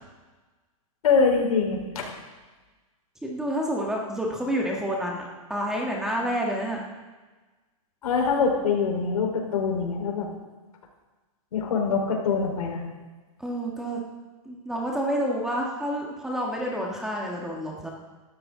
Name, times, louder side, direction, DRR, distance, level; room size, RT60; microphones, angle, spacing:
voice 1, 1.0-1.8 8.0-10.3 11.5-12.8, left 5 dB, 90° left, 1 dB, 4.2 m, -24 dB
voice 2, 3.2-6.8 13.4-14.0 14.4-17.9, equal, 5° right, -1 dB, 1.5 m, -29 dB
17.5 x 13.0 x 3.8 m, 1.3 s
supercardioid pair, 170°, 18 cm